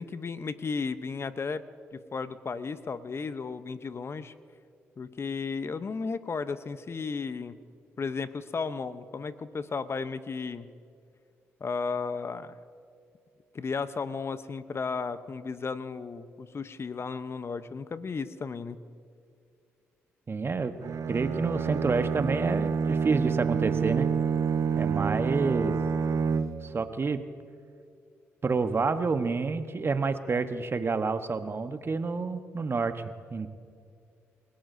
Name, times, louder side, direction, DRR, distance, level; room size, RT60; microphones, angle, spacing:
voice 1, 0.0-1.6 1.9-4.3 5.0-7.5 8.0-10.7 11.6-12.6 13.5-18.8, left 5 dB, 45° left, 13 dB, 0.8 m, -34 dB
voice 2, 20.3-20.7 21.1-24.1 24.8-25.8 26.6-27.2 28.4-33.0 33.3-33.5, right 4 dB, 40° right, 9 dB, 1.2 m, -28 dB
Bowed string instrument, 20.8-26.8, right 6 dB, 60° right, 0.7 m, -28 dB
29.5 x 17.0 x 2.7 m, 2.3 s
hypercardioid pair, 45°, 6 cm